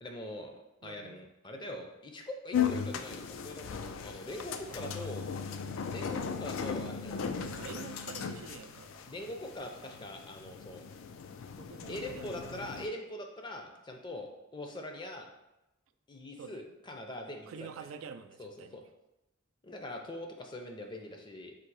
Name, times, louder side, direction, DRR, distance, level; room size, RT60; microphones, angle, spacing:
voice 1, 0.0-0.5 0.8-5.2 5.9-7.5 9.1-10.8 11.9-15.3 16.1-17.7 18.4-18.8 19.6-21.5, left 1 dB, 25° left, 3 dB, 0.5 m, -43 dB
voice 2, 0.8-1.2 4.7-5.1 7.4-9.1 11.6-12.3 16.4-16.6 17.5-18.8, right 5 dB, 85° right, 10 dB, 0.3 m, -47 dB
sound 1, 2.5-12.9, left 7 dB, 85° left, 0.3 m, -37 dB
3.8 x 2.7 x 4.6 m, 0.94 s
head